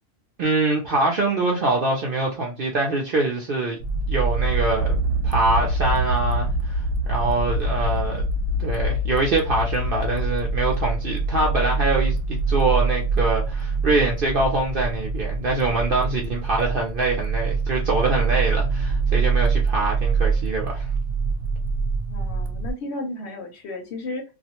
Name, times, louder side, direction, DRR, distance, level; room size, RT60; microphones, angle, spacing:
voice 1, 0.4-3.8 4.1-5.0 5.2-6.8 7.1-8.2 8.6-20.9, right 2 dB, 60° right, 0.6 m, -24 dB
sound 1, 3.8-22.7, right 3 dB, 85° right, 1.0 m, -24 dB
voice 2, 22.1-24.2, left 2 dB, 65° left, 0.8 m, -33 dB
2.4 x 2.0 x 2.8 m
omnidirectional pair, 1.4 m